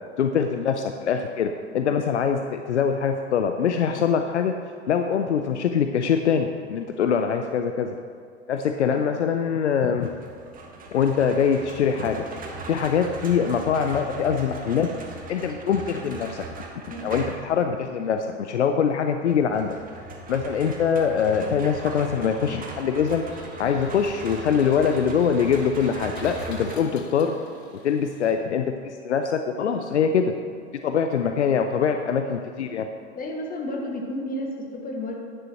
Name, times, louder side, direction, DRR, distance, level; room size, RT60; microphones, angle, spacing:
voice 1, 0.2-4.5 4.9-7.9 8.5-10.1 10.9-12.2 12.7-14.9 15.3-16.4 17.0-19.8 20.3-23.2 23.6-27.4 27.8-30.3 30.8-32.9, left 7 dB, 85° left, 6 dB, 0.5 m, -23 dB
sound 1, 10.0-17.6 19.3-26.8, right 3 dB, 25° right, 1.5 m, -39 dB
Engine, 23.1-28.7, left 4 dB, 65° left, 1.3 m, -49 dB
voice 2, 33.1-35.2, left 1 dB, 25° left, 1 dB, 1.7 m, -32 dB
10.0 x 9.6 x 3.0 m, 2.2 s
figure-of-eight pair, 85°, 34 cm